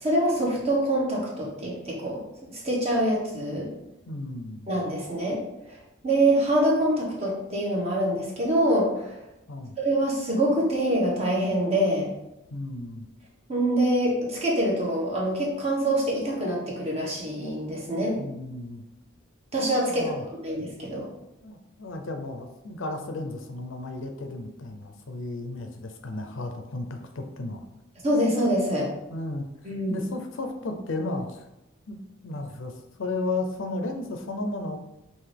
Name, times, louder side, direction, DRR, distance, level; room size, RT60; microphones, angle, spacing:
voice 1, 0.0-3.7 4.7-5.8 6.0-9.2 9.8-12.1 13.5-18.2 19.5-20.1 20.4-21.1 28.0-28.9 29.6-29.9, right 1 dB, 30° right, -4 dB, 1.2 m, -25 dB
voice 2, 4.1-4.7 9.5-9.8 12.5-13.1 18.0-18.8 19.9-20.3 21.4-27.6 29.1-29.5 29.9-31.4 31.9-32.0 32.2-34.8, left 2 dB, 65° left, 5 dB, 0.5 m, -34 dB
5.7 x 2.6 x 3.3 m, 0.92 s
head